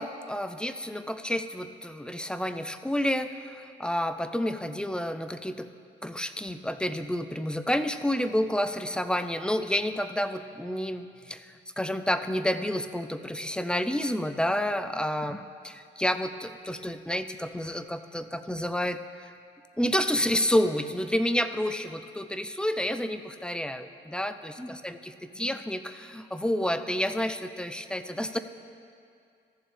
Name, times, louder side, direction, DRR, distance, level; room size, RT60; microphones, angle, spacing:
voice 1, 0.0-5.7 6.0-19.3 19.8-28.4, equal, 5° left, 10 dB, 0.4 m, -30 dB
14.5 x 6.9 x 3.7 m, 2.3 s
cardioid pair, 90°, 20 cm